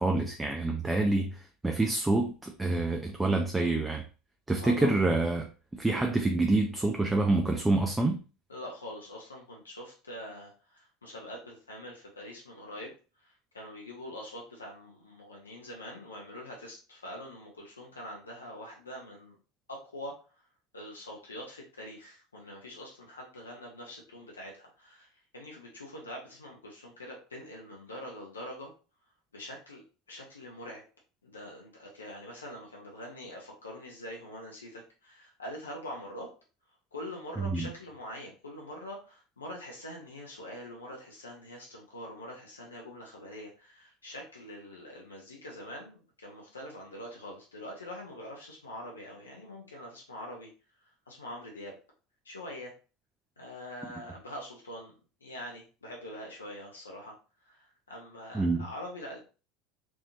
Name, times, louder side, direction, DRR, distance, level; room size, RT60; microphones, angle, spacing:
voice 1, 0.0-4.0 4.5-8.2 37.4-37.7 58.3-58.7, right 2 dB, 10° right, 2 dB, 0.6 m, -27 dB
voice 2, 4.6-5.0 8.5-12.9 13.2-19.4 19.7-20.2 20.7-25.1 25.3-28.7 29.3-30.8 31.2-36.3 36.9-50.5 51.1-51.8 52.2-52.7 53.4-54.9 55.2-57.1 57.4-59.2, left 1 dB, 80° left, -1 dB, 0.9 m, -44 dB
4.6 x 2.9 x 2.7 m, 0.34 s
figure-of-eight pair, 70°, 0 cm